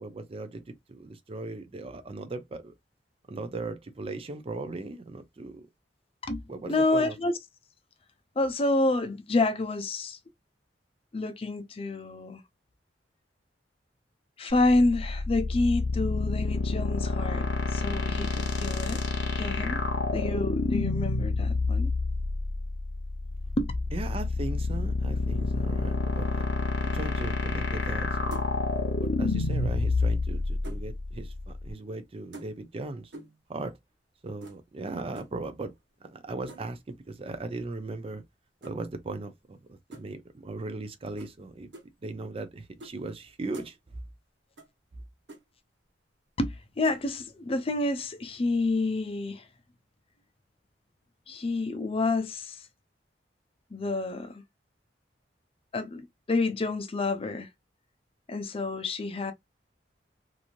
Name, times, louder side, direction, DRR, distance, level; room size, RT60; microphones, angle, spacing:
voice 1, 0.0-2.7 3.3-5.7 6.5-7.1 23.9-26.4 26.8-28.5 29.0-33.1 33.5-33.8 34.2-35.7 36.0-38.2 38.6-41.7 42.0-43.8, right 2 dB, 30° right, 0.4 m, -38 dB
voice 2, 6.7-7.3 8.4-10.2 11.1-12.4 14.4-19.0 19.4-19.8 20.1-21.9 23.6-23.7 46.4-49.5 51.3-52.6 53.7-54.4 55.7-57.5 58.3-59.3, left 2 dB, 30° left, 0.5 m, -28 dB
sound 1, 14.5-31.7, left 3 dB, 85° left, 0.8 m, -28 dB
sound 2, 27.8-28.0 28.3-28.7 29.9-30.9 32.3-32.8 33.1-33.5 34.4-34.6 35.2-35.4 36.5-36.8 38.6-38.8 39.9-40.1 41.2-41.3 41.7-41.9 42.8-42.9 43.3-43.7 44.6-44.7 45.0-45.1 45.3-45.4 46.8-47.0, right 2 dB, 85° right, 1.1 m, -46 dB
3.0 x 2.6 x 2.4 m
head